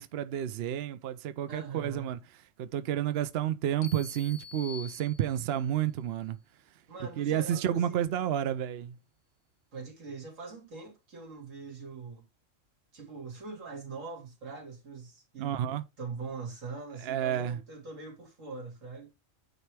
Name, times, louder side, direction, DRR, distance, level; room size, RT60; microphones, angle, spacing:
voice 1, 0.0-6.4 7.2-9.0 15.4-15.8 17.0-17.6, right 10 dB, 60° right, 0.7 m, -31 dB
voice 2, 1.5-2.1 6.9-8.1 9.7-12.2 12.9-15.7 16.0-19.1, right 4 dB, 80° right, 2.7 m, -42 dB
sound 1, 3.8-5.7, left 6 dB, 60° left, 1.0 m, -47 dB
9.4 x 3.3 x 4.6 m
omnidirectional pair, 1.3 m